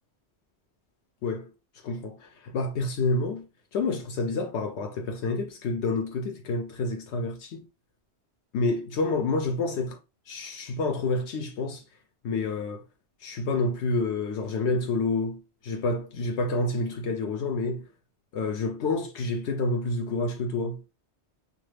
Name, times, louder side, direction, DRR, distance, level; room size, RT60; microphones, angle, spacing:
voice 1, 1.8-7.7 8.5-10.0 10.3-11.8 12.2-12.8 13.2-17.9 18.3-20.8, left 3 dB, 75° left, 0.9 m, -28 dB
2.5 x 2.4 x 3.2 m
omnidirectional pair, 1.2 m